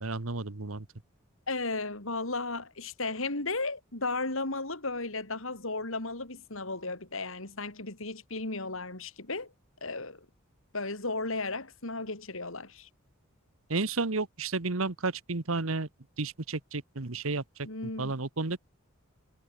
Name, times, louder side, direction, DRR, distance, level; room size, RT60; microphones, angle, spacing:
voice 1, 0.0-0.8 13.7-15.9 16.2-17.4 18.0-18.6, right 3 dB, 75° right, 1.4 m, -32 dB
voice 2, 1.5-9.5 9.8-10.3 10.7-12.9 17.7-18.2, left 3 dB, 70° left, 4.2 m, -35 dB
head